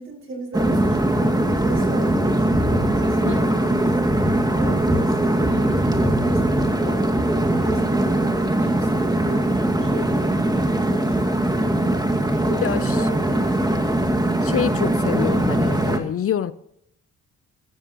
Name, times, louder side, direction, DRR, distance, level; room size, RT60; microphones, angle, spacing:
voice 1, 0.0-10.3 10.8-11.8 12.4-13.8, right 1 dB, 45° right, 6.0 m, -37 dB
sound 1, 0.5-16.0, right 1 dB, 15° right, 2.2 m, -21 dB
voice 2, 12.6-13.0 14.4-16.5, left 9 dB, 50° left, 0.7 m, -26 dB
22.0 x 14.0 x 3.1 m
cardioid pair, 90°, 30 cm